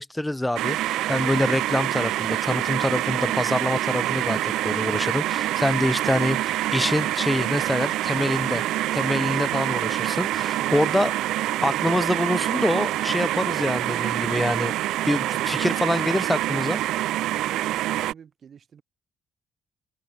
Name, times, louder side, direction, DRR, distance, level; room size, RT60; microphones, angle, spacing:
voice 1, 0.0-8.6 8.9-11.1 11.6-14.7 15.1-16.8, left 1 dB, 10° left, 1.8 m, -25 dB
sound 1, 0.6-18.1, right 14 dB, 90° right, 0.4 m, -26 dB
voice 2, 10.6-11.1 15.3-15.7 17.5-18.8, right 7 dB, 55° right, 4.0 m, -43 dB
cardioid pair, 90°, 0 cm